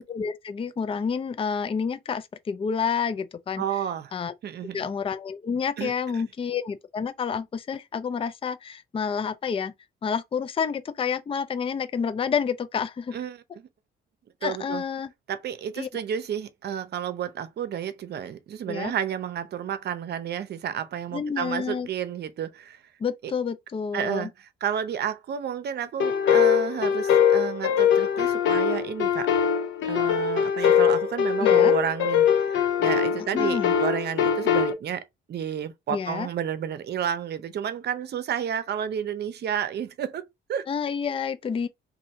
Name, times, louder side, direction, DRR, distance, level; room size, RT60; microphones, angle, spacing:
voice 1, 0.0-3.6 4.1-4.3 4.7-9.7 10.0-13.2 14.4-15.1 15.8-15.9 18.7-18.9 21.1-21.9 23.0-24.3 31.4-31.7 33.3-33.7 35.9-36.3 40.7-41.7, left 6 dB, 30° left, 0.4 m, -29 dB
voice 2, 3.6-4.1 4.4-4.9 5.8-5.9 13.1-13.7 14.4-14.8 15.3-22.8 23.2-23.3 23.9-29.3 29.9-32.5 32.8-40.7, right 9 dB, 55° right, 0.7 m, -31 dB
sound 1, 26.0-34.7, left 8 dB, 75° left, 0.8 m, -22 dB
2.7 x 2.7 x 4.2 m
cardioid pair, 90°, 20 cm